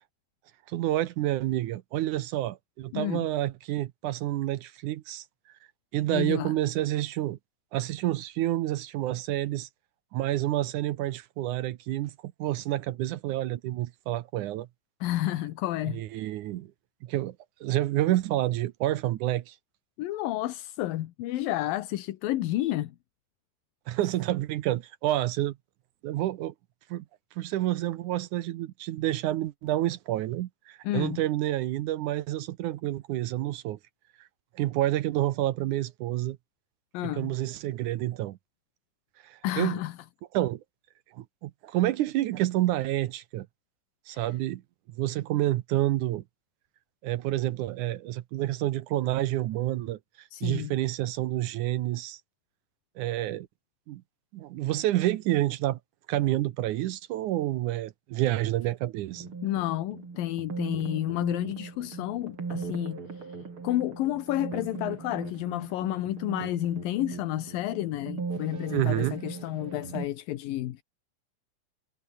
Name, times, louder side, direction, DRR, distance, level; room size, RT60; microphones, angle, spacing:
voice 1, 0.7-5.3 5.9-7.4 7.7-9.7 10.1-14.7 15.9-16.7 17.0-17.4 17.6-19.6 23.9-25.6 26.0-26.5 26.9-27.1 27.4-33.8 34.5-36.4 37.0-38.4 39.2-39.8 40.3-40.6 41.1-43.5 44.1-44.6 45.0-46.2 47.0-52.2 53.0-53.5 53.9-54.0 54.3-55.8 56.1-59.3 68.7-69.2, right 14 dB, 70° right, 2.1 m, -29 dB
voice 2, 2.9-3.3 6.1-6.5 15.0-16.0 20.0-23.0 30.8-31.2 36.9-37.3 39.4-40.0 44.1-44.2 50.3-50.7 59.4-63.4 63.6-70.8, left 15 dB, 80° left, 2.8 m, -31 dB
sound 1, 59.1-70.1, right 4 dB, 35° right, 4.5 m, -39 dB
omnidirectional pair, 4.1 m